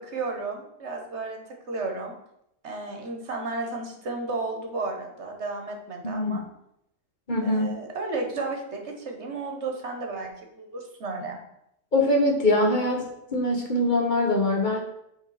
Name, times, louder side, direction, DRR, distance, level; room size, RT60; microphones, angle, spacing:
voice 1, 0.0-1.4 1.7-2.2 2.6-6.4 7.4-11.4, right 3 dB, 60° right, 2 dB, 1.5 m, -33 dB
voice 2, 6.0-6.4 7.3-7.8 11.9-14.8, left 1 dB, 40° left, 1 dB, 1.2 m, -23 dB
7.9 x 3.8 x 5.6 m, 0.79 s
omnidirectional pair, 1.3 m